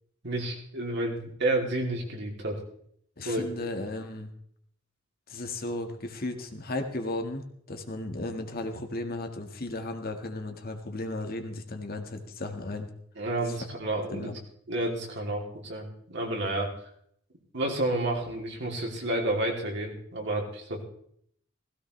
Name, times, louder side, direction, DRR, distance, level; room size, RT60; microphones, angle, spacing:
voice 1, 0.2-2.6 3.2-3.5 13.2-14.3 14.7-16.7 17.5-20.8, right 1 dB, 60° right, 0 dB, 2.9 m, -30 dB
voice 2, 3.2-4.3 5.3-12.9 13.5-13.6 14.1-14.4, left 2 dB, 50° left, 5 dB, 1.7 m, -35 dB
17.0 x 15.5 x 3.3 m, 0.67 s
head